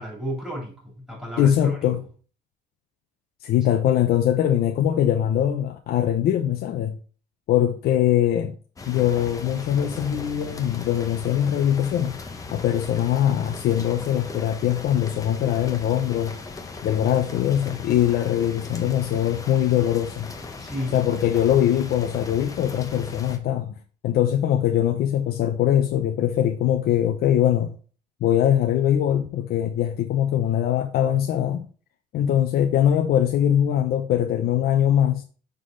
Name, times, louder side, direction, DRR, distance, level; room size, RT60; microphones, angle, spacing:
voice 1, 0.0-1.9 20.6-21.1, equal, 5° right, 2.9 m, -32 dB
voice 2, 1.4-2.0 3.4-7.0 7.5-8.5 8.9-12.2 12.5-16.4 16.8-20.3 20.9-23.8 24.0-27.7 28.2-31.7 32.1-35.2, left 10 dB, 65° left, 0.6 m, -22 dB
sound 1, 8.8-23.4, left 3 dB, 20° left, 0.9 m, -38 dB
6.6 x 3.8 x 3.8 m
cardioid pair, 110°, 17 cm